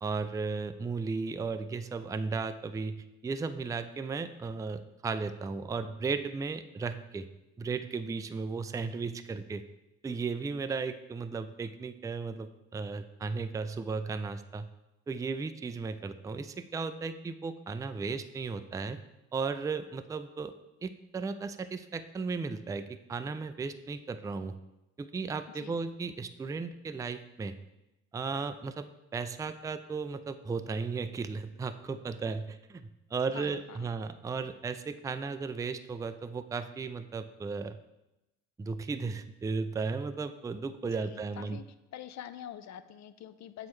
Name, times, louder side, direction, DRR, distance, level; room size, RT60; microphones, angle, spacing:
voice 1, 0.0-3.0 3.2-7.3 7.6-9.6 10.0-14.7 15.1-19.0 19.3-20.5 20.8-24.5 25.0-27.6 28.1-37.8 38.6-41.6, right 4 dB, 10° right, 10 dB, 0.3 m, -35 dB
voice 2, 33.3-33.9 40.8-41.6 41.9-43.7, left 10 dB, 50° left, 12 dB, 0.5 m, -46 dB
7.6 x 4.2 x 3.1 m, 0.95 s
hypercardioid pair, 50°, 36 cm